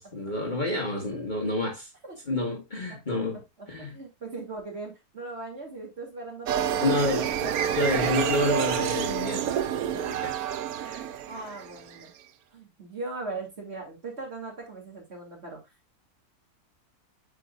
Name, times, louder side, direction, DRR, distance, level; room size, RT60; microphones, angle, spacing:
voice 1, 0.0-1.9 2.3-4.0 6.8-10.4 10.8-11.0, left 2 dB, 30° left, 1.7 m, -29 dB
voice 2, 3.8-7.5 11.0-12.1 12.5-15.6, right 3 dB, 40° right, 2.9 m, -39 dB
sound 1, 6.5-12.0, right 9 dB, 70° right, 1.1 m, -28 dB
9.1 x 5.0 x 2.4 m
omnidirectional pair, 1.6 m